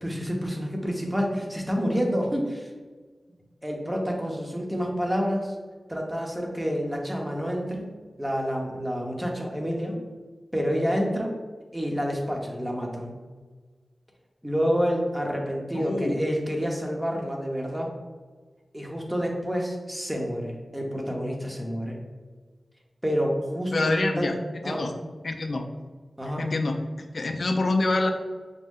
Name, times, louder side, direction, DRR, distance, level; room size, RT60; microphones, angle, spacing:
voice 1, 0.0-2.7 3.6-5.5 5.9-7.9 8.2-10.0 10.5-11.3 11.7-13.1 14.4-17.9 18.7-22.0 23.0-24.3 24.6-24.9 26.2-26.4, equal, 10° right, 0 dB, 0.8 m, -28 dB
voice 2, 15.7-16.2 23.7-24.4 24.7-24.9 25.2-25.7 26.4-28.1, left 2 dB, 65° left, 5 dB, 0.4 m, -26 dB
5.1 x 2.1 x 3.6 m, 1.4 s
wide cardioid pair, 65°, 0 cm